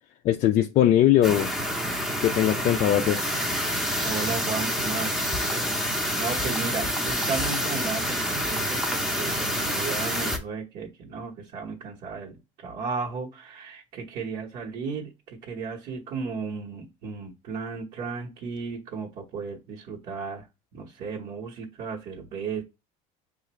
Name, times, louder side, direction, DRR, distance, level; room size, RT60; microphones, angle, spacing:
voice 1, 0.2-1.5 2.2-3.2, left 12 dB, 45° left, 0.4 m, -20 dB
sound 1, 1.2-10.4, equal, 5° right, 0.7 m, -27 dB
voice 2, 4.0-5.8 6.2-20.5 20.7-22.6, right 5 dB, 55° right, 1.3 m, -34 dB
6.5 x 2.5 x 3.1 m
supercardioid pair, 105°, 17 cm